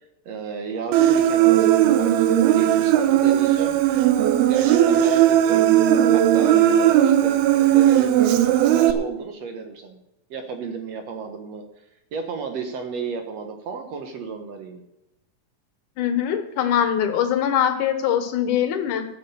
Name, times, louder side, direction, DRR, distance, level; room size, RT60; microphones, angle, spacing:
voice 1, 0.2-4.2 4.5-5.7 6.1-10.0 10.3-11.6 12.1-14.8, right 5 dB, 60° right, 6 dB, 1.8 m, -33 dB
Human voice, 0.9-8.9, right 11 dB, 85° right, 2.8 m, -17 dB
voice 2, 16.0-19.1, left 9 dB, 65° left, 8 dB, 2.4 m, -22 dB
13.5 x 7.6 x 6.9 m, 0.92 s
omnidirectional pair, 4.4 m